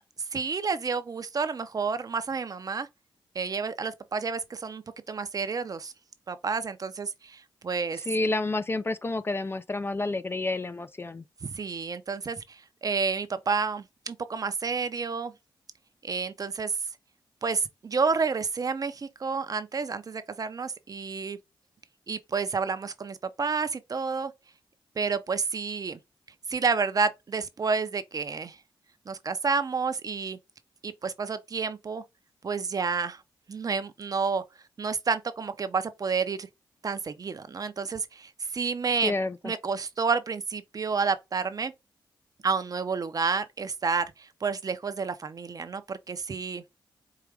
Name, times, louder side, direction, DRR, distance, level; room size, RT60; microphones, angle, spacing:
voice 1, 0.3-2.9 3.3-5.9 6.3-8.0 11.4-15.3 16.0-16.8 17.4-21.4 22.1-24.3 25.0-26.0 26.5-28.6 29.1-30.4 30.8-32.0 32.4-33.2 33.5-34.4 34.8-36.5 36.8-39.1 39.4-41.7 42.4-46.6, right 5 dB, 45° right, 0.6 m, -30 dB
voice 2, 8.1-11.2 39.0-39.5, left 2 dB, 25° left, 0.4 m, -29 dB
4.8 x 2.5 x 3.2 m
cardioid pair, 75°, 9 cm